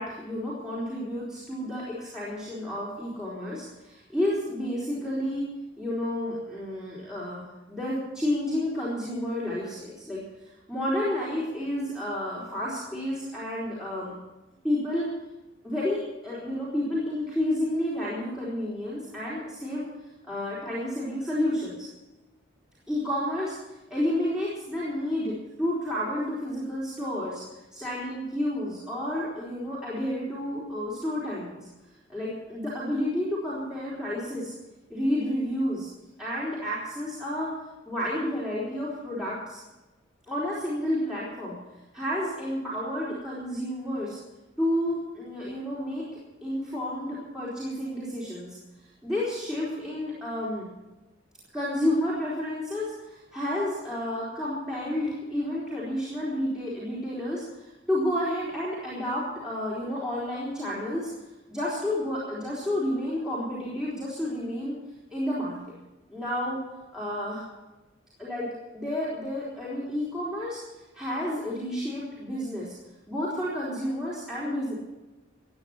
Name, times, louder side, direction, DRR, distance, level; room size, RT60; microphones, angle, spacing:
voice 1, 0.0-5.5 5.8-14.2 14.6-15.1 15.6-19.9 20.2-21.9 22.9-27.4 27.7-31.6 32.1-34.5 34.9-35.9 36.2-37.6 37.9-39.6 40.3-41.6 41.9-44.2 44.6-46.1 46.4-48.6 49.0-50.7 51.5-61.1 61.5-64.7 65.1-65.6 66.1-66.6 66.9-67.5 68.2-70.6 70.9-72.7 73.1-74.7, left 1 dB, 5° right, -8 dB, 4.2 m, -30 dB
16.5 x 9.7 x 7.2 m, 1.1 s
head